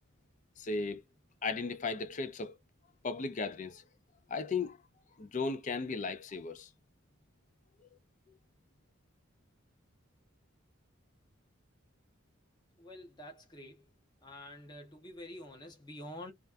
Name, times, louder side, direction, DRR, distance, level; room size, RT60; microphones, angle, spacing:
voice 1, 0.6-1.0 1.4-2.6 3.0-3.8 4.3-4.8 5.2-6.7, left 4 dB, 35° left, 0.4 m, -36 dB
voice 2, 12.8-13.8 14.2-16.3, left 1 dB, 20° left, 0.8 m, -48 dB
2.4 x 2.2 x 2.4 m
head